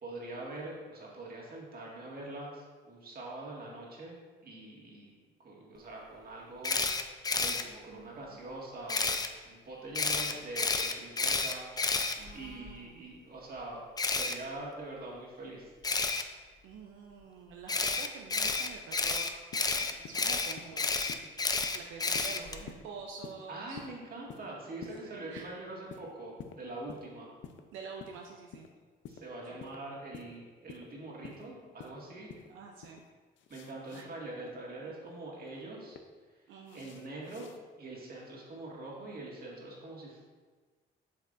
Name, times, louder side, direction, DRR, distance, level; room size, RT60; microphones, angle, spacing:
voice 1, 0.0-5.1 5.4-6.8 7.1-9.2 9.4-11.7 12.3-15.7 23.5-27.3 29.1-32.4 33.5-36.0 36.7-37.5 37.8-40.2, right 2 dB, 50° right, -3 dB, 1.9 m, -44 dB
Camera, 6.6-7.6 8.9-9.3 9.9-12.7 14.0-14.3 15.8-16.2 17.7-22.6, left 4 dB, 20° left, 0.4 m, -30 dB
voice 2, 7.9-8.4 12.2-13.1 16.6-19.3 19.7-20.9 21.7-23.8 25.0-25.5 27.7-28.7 29.5-29.6 32.3-33.0 33.9-34.1 34.8-34.9 36.5-36.9, right 5 dB, 90° right, 1 dB, 0.6 m, -48 dB
sound 1, 19.5-19.7 20.0-20.3 20.6-20.8 21.1-21.3 21.6-21.8 22.1-22.3 22.7-22.9 23.2-23.4 23.8-23.9 24.3-24.5 24.8-25.0 25.3-25.5 25.9-26.1 26.4-26.6 26.9-27.1 27.4-27.6 28.0-28.2 28.5-28.7 29.0-29.2 29.6-29.8 30.1-30.3 30.7-30.8 31.2-31.4 31.8-31.9 32.3-32.5 32.8-33.0 33.4-34.0 35.5-36.0 36.7-37.6, left 8 dB, 75° left, 0.6 m, -48 dB
8.0 x 5.3 x 2.6 m, 1.4 s
cardioid pair, 90°, 20 cm